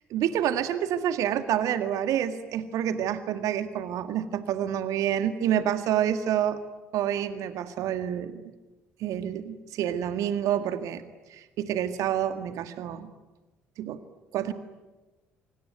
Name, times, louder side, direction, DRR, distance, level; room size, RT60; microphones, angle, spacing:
voice 1, 0.1-6.6 6.9-8.4 9.0-11.0 11.3-13.1 13.8-14.0 14.3-14.5, right 10 dB, 55° right, 11 dB, 1.9 m, -28 dB
25.5 x 25.0 x 9.3 m, 1.1 s
figure-of-eight pair, 50°, 7 cm